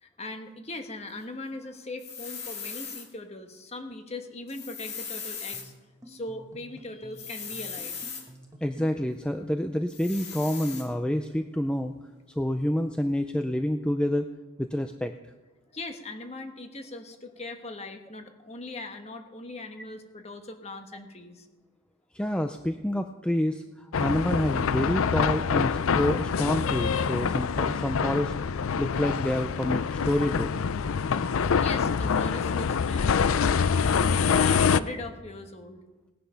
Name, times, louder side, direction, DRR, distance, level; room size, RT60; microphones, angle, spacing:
voice 1, 0.0-5.7 6.1-8.0 15.7-21.5 31.5-35.8, left 2 dB, 30° left, 6 dB, 1.3 m, -40 dB
sound 1, 2.0-3.1 4.5-5.7 7.2-8.2 9.9-10.9, left 6 dB, 50° left, 2.4 m, -38 dB
sound 2, 5.5-9.4, right 1 dB, 15° right, 1.4 m, -50 dB
voice 2, 8.6-11.9 12.4-14.3 14.6-15.1 22.1-28.3 28.8-30.7, left 1 dB, 5° left, 7 dB, 0.4 m, -28 dB
sound 3, 23.9-34.8, left 6 dB, 80° left, 0.5 m, -25 dB
18.0 x 10.0 x 5.7 m, 1.2 s
head